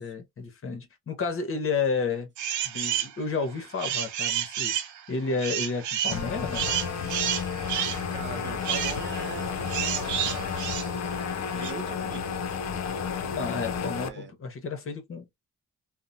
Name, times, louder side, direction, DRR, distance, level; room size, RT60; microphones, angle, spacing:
voice 1, 0.0-2.3 2.6-6.7 13.3-15.3, left 4 dB, 45° left, 1.0 m, -31 dB
sound 1, 2.4-3.1 3.6-11.7, right 10 dB, 80° right, 0.6 m, -30 dB
sound 2, 6.1-14.1, left 6 dB, 60° left, 0.7 m, -32 dB
voice 2, 8.1-10.7 11.4-12.3 13.4-13.5 13.9-14.3, right 4 dB, 40° right, 0.6 m, -41 dB
2.8 x 2.1 x 2.6 m
cardioid pair, 90°, 30 cm